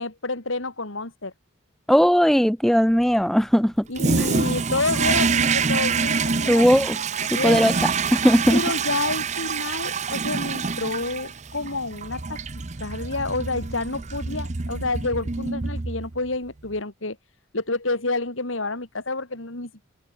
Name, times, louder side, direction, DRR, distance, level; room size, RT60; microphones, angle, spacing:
voice 1, 0.0-1.3 3.9-6.8 7.3-7.6 8.5-17.2 17.5-19.9, left 3 dB, 80° left, 3.1 m, -29 dB
voice 2, 1.9-3.9 6.5-7.0 7.3-8.6, equal, ahead, 0.5 m, -18 dB
Toilet flush, 3.9-16.3, right 5 dB, 35° right, 0.7 m, -26 dB
open air
head